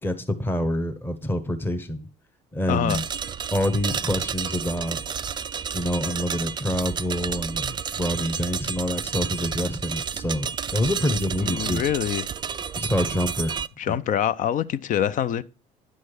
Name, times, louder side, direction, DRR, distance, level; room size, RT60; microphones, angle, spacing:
voice 1, 0.0-2.1 2.5-3.0 3.5-5.0 5.7-11.8 12.7-13.5 13.9-14.0, left 1 dB, 10° left, 1.1 m, -26 dB
voice 2, 2.7-3.0 11.4-12.3 13.8-15.4, left 10 dB, 40° left, 0.5 m, -25 dB
sound 1, 2.9-13.7, right 7 dB, 20° right, 0.4 m, -31 dB
9.9 x 6.3 x 4.4 m
figure-of-eight pair, 60°, 21 cm